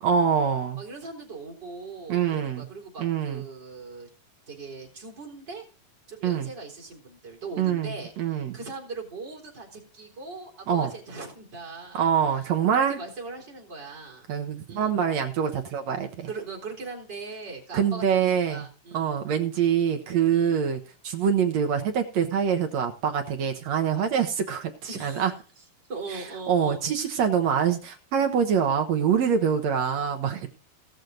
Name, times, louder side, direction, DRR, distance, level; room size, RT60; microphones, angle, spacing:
voice 1, 0.0-0.8 2.1-2.7 3.0-3.5 6.2-6.5 7.6-8.6 10.7-10.9 11.9-13.0 14.3-16.3 17.7-18.7 18.9-25.3 26.1-30.5, right 7 dB, 65° right, 5 dB, 1.8 m, -25 dB
voice 2, 0.8-4.1 4.5-5.6 6.1-12.1 12.7-14.3 14.7-14.9 16.3-19.1 20.3-20.6 24.9-25.2 25.9-26.8, right 3 dB, 25° right, -2 dB, 4.1 m, -40 dB
18.5 x 6.4 x 3.9 m, 0.37 s
omnidirectional pair, 4.5 m